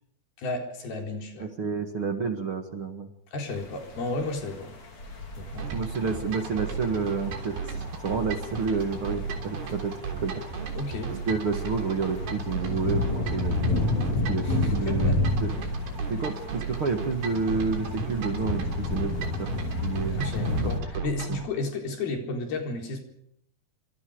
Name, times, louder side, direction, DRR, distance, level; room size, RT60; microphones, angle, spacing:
voice 1, 0.4-1.5 3.3-4.7 5.4-5.7 10.7-11.1 14.4-15.2 20.1-23.0, left 3 dB, 75° left, 3 dB, 6.0 m, -33 dB
voice 2, 1.4-3.1 5.7-7.7 8.0-10.4 11.1-15.5 16.1-19.5 19.8-20.4 20.6-20.7 21.3-21.4, right 5 dB, 45° right, 6 dB, 2.2 m, -30 dB
sound 1, 3.5-20.8, left 2 dB, 45° left, 5.4 m, -31 dB
sound 2, 5.4-13.6, right 2 dB, 60° right, 6.0 m, -44 dB
sound 3, 5.6-21.5, right 5 dB, 85° right, 5.4 m, -35 dB
28.0 x 25.5 x 5.1 m, 0.69 s
omnidirectional pair, 4.4 m